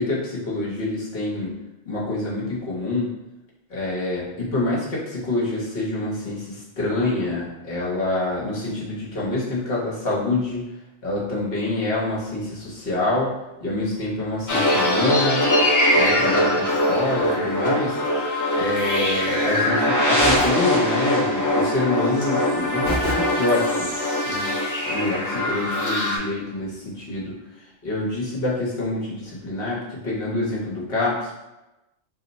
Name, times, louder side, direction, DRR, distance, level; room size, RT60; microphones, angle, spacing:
voice 1, 0.0-1.5 1.8-3.1 3.7-10.7 11.0-13.3 13.6-15.4 15.9-18.0 18.5-24.0 24.2-24.5 24.9-31.4, left 2 dB, 60° left, -5 dB, 1.2 m, -26 dB
sound 1, 14.5-26.2, left 1 dB, 30° left, 0.3 m, -22 dB
sound 2, 20.2-21.4 22.9-24.0, right 1 dB, 25° right, 0.6 m, -29 dB
2.9 x 2.1 x 3.9 m, 0.98 s
omnidirectional pair, 1.2 m